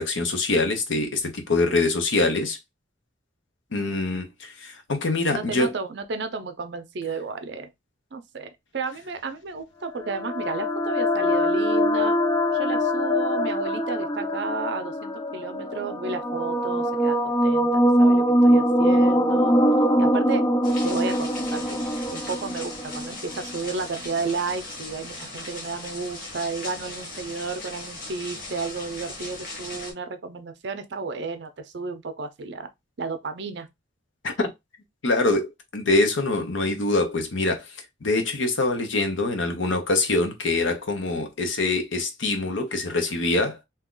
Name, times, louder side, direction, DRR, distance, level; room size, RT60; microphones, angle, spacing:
voice 1, 0.0-2.6 3.7-5.7 34.2-34.5 35.0-37.7 38.0-43.6, left 2 dB, 80° left, 0.8 m, -24 dB
voice 2, 5.3-7.7 8.1-12.2 12.5-19.6 20.0-20.4 20.8-21.8 22.1-32.7 33.0-33.7, right 4 dB, 60° right, 0.5 m, -32 dB
sound 1, 9.9-23.6, equal, 20° left, 0.3 m, -22 dB
sound 2, 20.6-29.9, left 2 dB, 45° left, 1.2 m, -38 dB
2.8 x 2.3 x 3.7 m
head